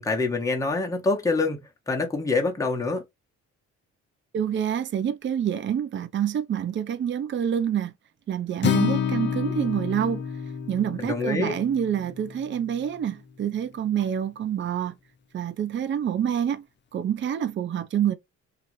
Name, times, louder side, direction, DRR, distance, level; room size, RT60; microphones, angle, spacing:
voice 1, 0.0-1.6 1.9-3.0 11.0-11.5, left 3 dB, 10° left, 1.0 m, -25 dB
voice 2, 4.3-7.9 8.3-10.2 10.7-14.9 15.3-16.6 16.9-18.1, right 9 dB, 40° right, 0.5 m, -27 dB
Acoustic guitar, 8.6-12.8, left 7 dB, 40° left, 0.6 m, -29 dB
2.9 x 2.5 x 3.0 m
cardioid pair, 90°, 30 cm